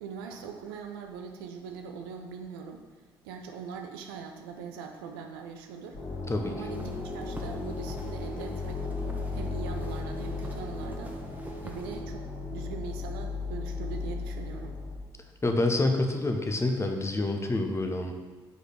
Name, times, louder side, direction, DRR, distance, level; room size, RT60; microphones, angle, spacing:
voice 1, 0.0-2.8 3.2-6.0 6.5-8.9 9.3-11.2 11.6-14.8, right 6 dB, 75° right, 4 dB, 0.5 m, -41 dB
sound 1, 5.9-15.0, left 3 dB, 50° left, 1.5 m, -35 dB
sound 2, 6.6-12.0, right 2 dB, 15° right, 1.1 m, -48 dB
voice 2, 15.4-18.1, left 2 dB, 20° left, 4 dB, 0.9 m, -27 dB
4.9 x 4.4 x 4.9 m, 1.4 s
figure-of-eight pair, 45°, 12 cm